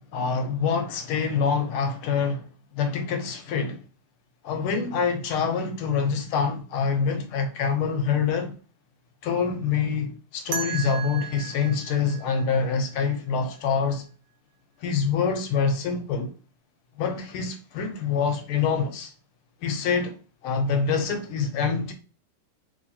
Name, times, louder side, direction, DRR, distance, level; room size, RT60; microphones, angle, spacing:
voice 1, 0.1-3.8 4.4-8.5 9.2-14.0 14.8-16.3 17.0-19.1 19.6-20.2 20.4-21.9, left 5 dB, 80° left, 1.6 m, -26 dB
sound 1, 10.5-13.4, right 9 dB, 90° right, 1.6 m, -36 dB
3.4 x 3.3 x 2.8 m
omnidirectional pair, 2.4 m